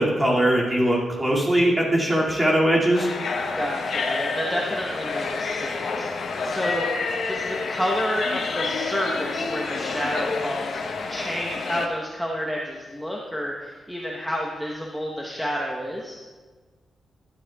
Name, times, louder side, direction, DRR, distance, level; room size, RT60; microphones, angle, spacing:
voice 1, 0.0-3.1, right 1 dB, 15° right, -4 dB, 2.3 m, -20 dB
sound 1, 2.9-11.9, left 4 dB, 65° left, 0.9 m, -28 dB
voice 2, 3.6-16.2, equal, ahead, -3 dB, 1.0 m, -30 dB
12.5 x 11.5 x 2.3 m, 1.4 s
wide cardioid pair, 125°, 0 cm